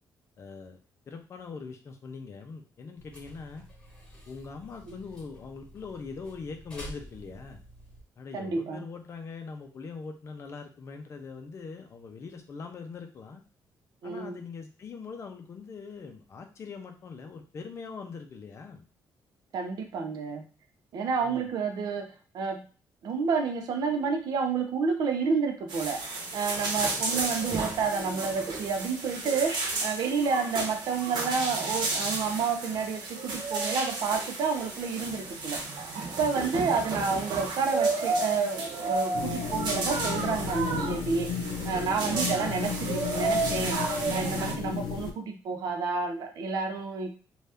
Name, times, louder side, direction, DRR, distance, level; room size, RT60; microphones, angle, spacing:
voice 1, 0.4-0.8 1.1-3.6 4.3-7.6 8.2-13.4 14.0-18.9 21.2-21.5 26.8-27.0 42.2-42.5, left 5 dB, 40° left, 5 dB, 0.5 m, -42 dB
sound 1, 3.0-8.0, equal, 15° left, 1.0 m, -48 dB
voice 2, 8.3-8.8 14.0-14.4 19.5-20.4 20.9-22.1 22.3-22.6 23.0-26.0 26.3-35.6 36.0-41.3 41.6-43.8 44.1-47.1, right 5 dB, 65° right, 3 dB, 0.6 m, -30 dB
sound 2, 25.7-44.5, right 3 dB, 80° right, 0.9 m, -32 dB
sound 3, 39.1-45.1, left 6 dB, 85° left, 0.5 m, -34 dB
2.7 x 2.3 x 3.4 m, 0.37 s
cardioid pair, 165°, 8 cm